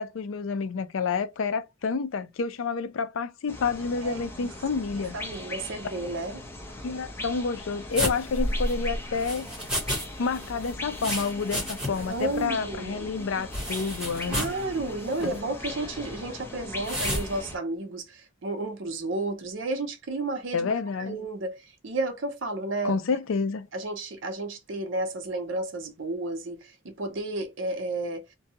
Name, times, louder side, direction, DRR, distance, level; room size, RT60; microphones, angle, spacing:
voice 1, 0.0-5.2 6.8-9.5 10.2-14.4 15.2-15.3 20.5-21.2 22.8-23.7, left 5 dB, 70° left, 0.4 m, -29 dB
sound 1, 3.5-17.6, left 1 dB, 10° left, 0.7 m, -40 dB
voice 2, 4.0-4.5 5.0-6.4 11.9-13.1 14.3-20.7 21.1-23.0 23.7-28.2, right 2 dB, 60° right, 0.6 m, -32 dB
sound 2, 7.9-10.1 10.3-12.1 12.4-12.5 13.5-14.6 15.1-15.4 16.8-17.3, equal, 5° right, 1.1 m, -30 dB
2.6 x 2.2 x 2.8 m
head